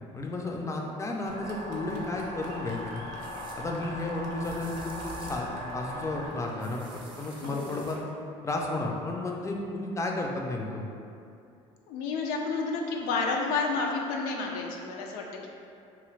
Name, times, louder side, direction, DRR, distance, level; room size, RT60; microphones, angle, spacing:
voice 1, 0.0-3.0 3.5-8.0 8.4-10.9, left 2 dB, 20° left, 0 dB, 0.4 m, -33 dB
Fireworks, 1.1-8.0, right 2 dB, 85° right, 0.5 m, -49 dB
sound 1, 1.3-6.3, left 1 dB, 60° left, 0.8 m, -40 dB
sound 2, 3.2-3.6 4.4-5.5 6.6-8.0, right 3 dB, 35° right, 0.5 m, -48 dB
voice 2, 7.4-7.7 11.9-15.5, left 4 dB, 80° left, 1 dB, 0.4 m, -30 dB
2.7 x 2.4 x 3.1 m, 2.6 s
supercardioid pair, 85°, 14 cm